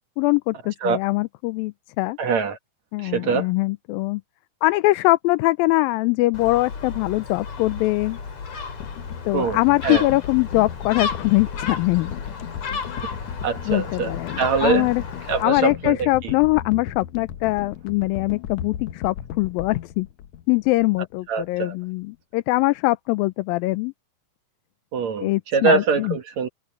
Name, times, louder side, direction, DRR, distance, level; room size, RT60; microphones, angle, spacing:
voice 1, 0.2-2.2 2.9-4.2 4.6-8.2 9.3-12.1 13.7-15.0 15.4-20.1 20.5-23.9 25.2-26.2, left 20 dB, 90° left, 2.4 m, -22 dB
voice 2, 2.2-2.6 3.0-3.5 9.3-10.1 13.0-13.2 13.4-14.1 14.4-14.9 15.3-16.3 21.3-21.8 24.9-26.5, right 5 dB, 60° right, 2.6 m, -23 dB
Gull seagull, 6.3-15.4, left 5 dB, 50° left, 4.5 m, -33 dB
sound 1, 8.8-21.1 21.4-21.6, left 10 dB, 70° left, 2.0 m, -36 dB
omnidirectional pair, 4.0 m